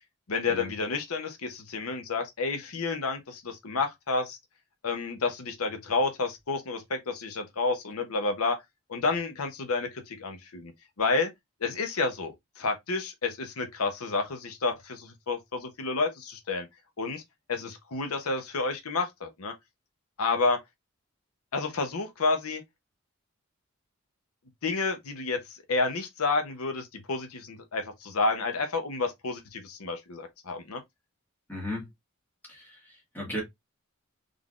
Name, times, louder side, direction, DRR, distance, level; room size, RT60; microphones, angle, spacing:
voice 1, 0.3-4.4 4.8-8.6 8.9-10.7 11.0-11.3 11.6-16.7 17.0-17.2 17.5-19.5 20.2-20.6 21.5-22.6 24.6-30.8, left 3 dB, 75° left, 0.7 m, -30 dB
voice 2, 31.5-31.9 32.5-33.4, left 1 dB, 10° left, 1.6 m, -36 dB
3.7 x 3.4 x 2.4 m
head